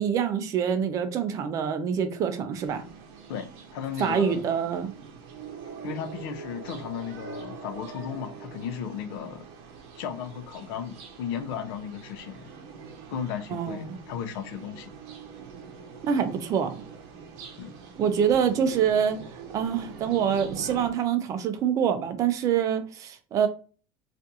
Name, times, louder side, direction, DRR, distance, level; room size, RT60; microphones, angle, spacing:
voice 1, 0.0-2.8 4.0-4.9 13.5-14.0 16.0-16.8 18.0-19.2 19.5-23.5, right 8 dB, 30° right, 0.4 m, -25 dB
sound 1, 2.5-20.9, right 5 dB, 60° right, 0.7 m, -44 dB
voice 2, 3.3-4.4 5.8-9.4 10.0-12.5 13.1-14.9 17.6-17.7, left 8 dB, 80° left, 0.6 m, -35 dB
2.7 x 2.5 x 3.5 m
cardioid pair, 175°, 12 cm